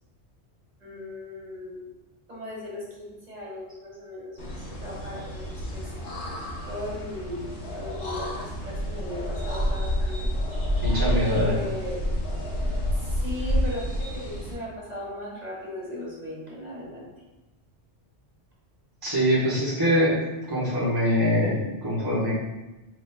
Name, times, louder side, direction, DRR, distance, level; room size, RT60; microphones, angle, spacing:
voice 1, 0.8-1.8 2.3-5.8 6.7-10.3 11.3-12.0 13.0-17.1, left 1 dB, 40° right, -5 dB, 1.5 m, -37 dB
sound 1, 4.4-14.5, equal, 85° left, 1.2 m, -29 dB
voice 2, 10.8-11.6 19.0-20.2 20.5-22.3, equal, 20° right, -9 dB, 1.0 m, -23 dB
6.0 x 3.4 x 2.2 m, 1.0 s
omnidirectional pair, 1.1 m